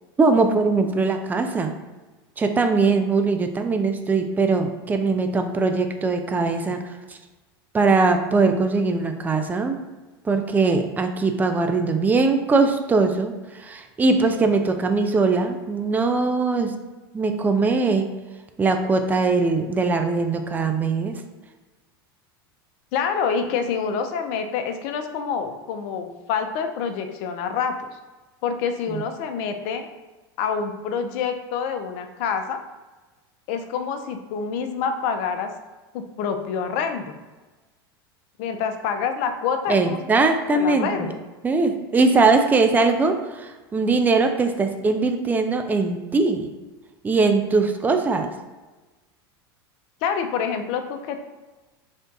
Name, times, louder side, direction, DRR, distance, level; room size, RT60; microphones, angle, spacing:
voice 1, 0.2-1.7 2.4-6.8 7.1-7.2 7.7-9.8 10.2-16.7 17.1-18.1 18.6-21.2 28.9-29.0 39.7-41.1 41.4-46.5 47.0-48.3, right 3 dB, 15° right, 6 dB, 0.4 m, -21 dB
voice 2, 22.9-27.7 28.4-29.9 30.4-32.6 33.5-35.5 35.9-37.2 38.4-40.0 40.5-41.2 50.0-51.2, left 6 dB, 55° left, 6 dB, 0.5 m, -27 dB
3.4 x 2.6 x 3.9 m, 1.2 s
hypercardioid pair, 105°, 13 cm